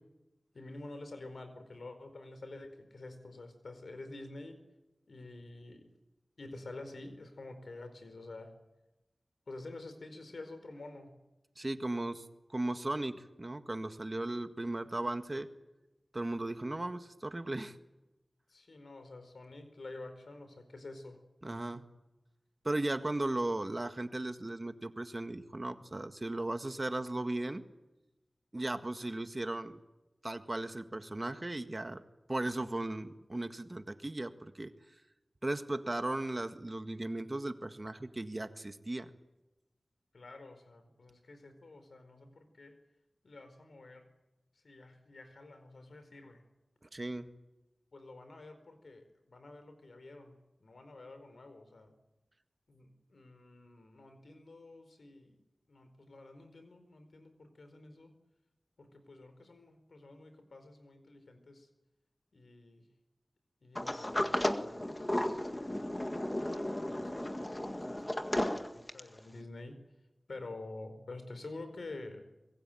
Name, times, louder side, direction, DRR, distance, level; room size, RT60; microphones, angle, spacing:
voice 1, 0.5-4.6 5.1-5.9 6.4-8.5 9.5-11.1 18.5-21.2 40.1-42.7 43.2-44.0 44.6-46.4 47.9-51.9 52.7-55.4 55.7-58.1 58.8-61.7 62.3-62.9 63.6-66.0 66.7-69.8 70.3-72.2, left 2 dB, 85° left, 8 dB, 4.6 m, -49 dB
voice 2, 11.6-12.2 12.5-15.5 16.1-17.8 21.4-21.8 22.6-27.6 28.5-29.8 30.2-32.0 32.3-34.7 35.4-39.1 46.9-47.3, right 2 dB, 35° right, 8 dB, 1.8 m, -36 dB
Sliding door, 63.8-69.2, left 1 dB, 20° left, 1.9 m, -34 dB
25.0 x 22.0 x 9.2 m, 0.99 s
wide cardioid pair, 70°, 0 cm